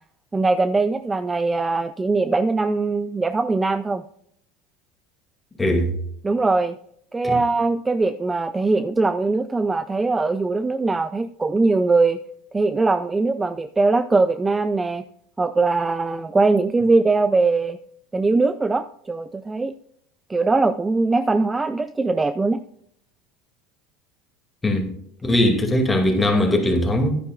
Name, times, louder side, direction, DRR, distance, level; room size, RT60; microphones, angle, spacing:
voice 1, 0.3-4.0 6.2-6.8 7.1-12.2 12.5-15.0 15.4-17.8 18.1-19.7 20.3-22.6, right 3 dB, 15° right, 0.4 m, -21 dB
voice 2, 5.6-5.9 7.2-7.3 24.6-24.9 25.2-27.1, left 1 dB, 15° left, 2.5 m, -20 dB
11.0 x 9.7 x 2.5 m
hypercardioid pair, 85°, 0 cm